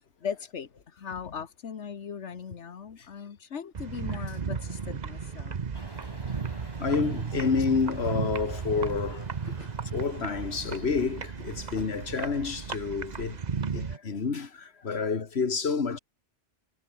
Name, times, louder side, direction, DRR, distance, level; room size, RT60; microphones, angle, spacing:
voice 1, 0.2-5.6 9.4-9.7 11.8-11.9 14.9-15.0, left 7 dB, 85° left, 1.6 m, -39 dB
sound 1, 3.7-14.0, right 5 dB, 40° right, 1.0 m, -35 dB
sound 2, 5.7-12.9, equal, 20° left, 7.6 m, -52 dB
voice 2, 6.8-9.7 9.9-13.4 13.7-16.0, left 5 dB, 65° left, 2.0 m, -29 dB
omnidirectional pair, 1.2 m